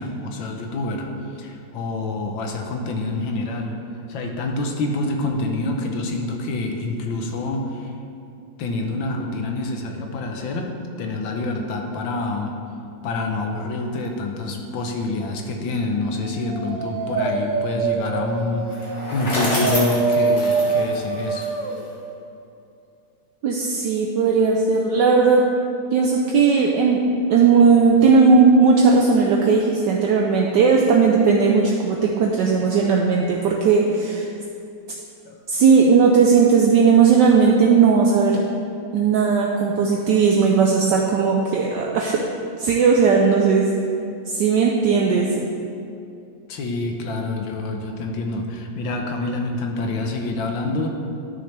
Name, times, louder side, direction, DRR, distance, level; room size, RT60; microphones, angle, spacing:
voice 1, 0.0-3.8 4.1-7.9 8.6-12.5 13.0-21.5 35.2-35.4 46.5-50.9, left 2 dB, 75° left, 2 dB, 1.6 m, -27 dB
Dog, 16.2-21.8, right 4 dB, 55° right, 1.0 m, -25 dB
Bicycle, 18.7-21.9, left 1 dB, 60° left, 2.5 m, -28 dB
voice 2, 23.4-25.5 25.9-27.0 27.3-34.3 35.5-38.4 38.9-42.2 42.6-43.7 44.3-45.4, right 5 dB, 70° right, 0 dB, 1.2 m, -17 dB
11.5 x 6.6 x 3.3 m, 2.5 s
omnidirectional pair, 2.2 m